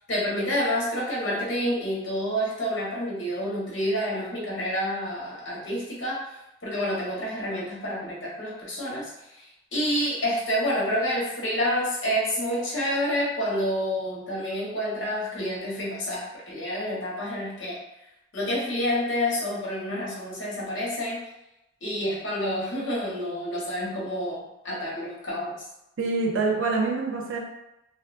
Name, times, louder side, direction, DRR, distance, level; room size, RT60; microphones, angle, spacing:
voice 1, 0.1-6.2 6.6-9.4 9.7-17.8 18.3-21.2 21.8-25.5, equal, 70° left, -6 dB, 0.9 m, -28 dB
voice 2, 26.0-27.4, right 3 dB, 80° right, 0 dB, 0.5 m, -25 dB
2.5 x 2.1 x 2.4 m, 0.89 s
head